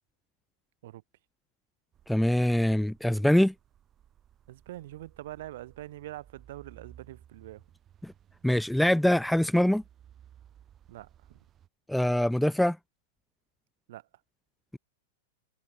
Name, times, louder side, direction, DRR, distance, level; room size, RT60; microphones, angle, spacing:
sound 1, 1.9-11.7, right 10 dB, 30° right, 6.7 m, -58 dB
voice 1, 2.1-3.5 8.0-8.1 8.4-9.8 11.9-12.8, left 1 dB, ahead, 0.4 m, -24 dB
voice 2, 4.5-7.6 10.9-11.4 13.9-14.0, right 15 dB, 60° right, 5.7 m, -44 dB
hypercardioid pair, 100°, 0 cm